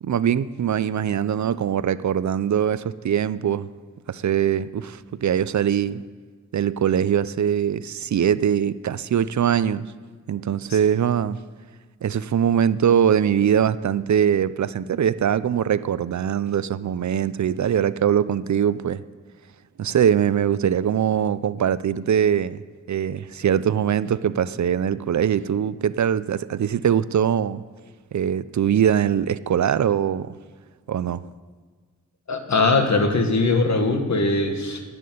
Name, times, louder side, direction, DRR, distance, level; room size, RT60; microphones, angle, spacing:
voice 1, 0.0-3.7 4.1-6.0 6.5-9.9 10.3-11.4 12.0-19.0 19.8-22.6 22.9-27.6 28.1-30.3 30.9-31.2, right 9 dB, 65° right, 0.5 m, -22 dB
voice 2, 32.3-34.8, left 3 dB, 65° left, 1.7 m, -21 dB
11.0 x 8.5 x 9.3 m
wide cardioid pair, 80°, 31 cm